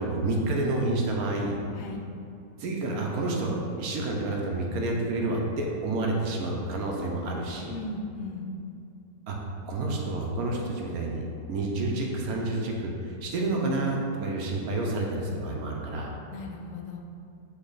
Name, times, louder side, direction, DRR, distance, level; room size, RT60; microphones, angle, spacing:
voice 1, 0.0-1.6 2.6-7.7 9.3-9.4 9.7-16.1, right 2 dB, 65° right, 0 dB, 1.1 m, -29 dB
voice 2, 7.7-8.5 16.3-17.0, left 2 dB, 60° left, 1 dB, 0.9 m, -37 dB
8.2 x 3.1 x 3.9 m, 2.5 s
omnidirectional pair, 1.9 m